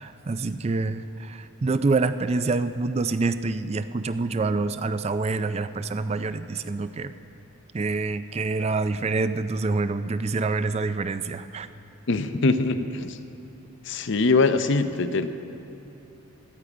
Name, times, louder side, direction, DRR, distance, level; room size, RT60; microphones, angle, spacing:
voice 1, 0.0-7.1 7.7-11.7, right 3 dB, 30° right, 12 dB, 0.3 m, -26 dB
voice 2, 12.1-13.2 13.9-15.3, left 3 dB, 55° left, 10 dB, 0.6 m, -23 dB
16.5 x 12.0 x 5.0 m, 2.9 s
head